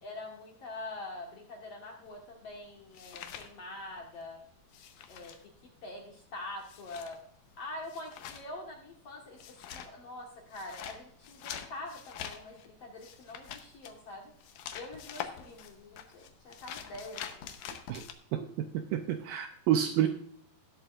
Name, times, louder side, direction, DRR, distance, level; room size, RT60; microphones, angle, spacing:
voice 1, 0.0-4.4 5.1-5.3 5.8-7.2 7.6-14.3 14.7-17.5, left 2 dB, 60° left, 0 dB, 1.7 m, -44 dB
sound 1, 2.1-4.2 4.5-18.1, left 9 dB, 90° left, 1.7 m, -45 dB
voice 2, 18.7-20.1, right 10 dB, 85° right, 7 dB, 2.0 m, -29 dB
18.5 x 7.8 x 2.4 m, 0.64 s
omnidirectional pair, 4.8 m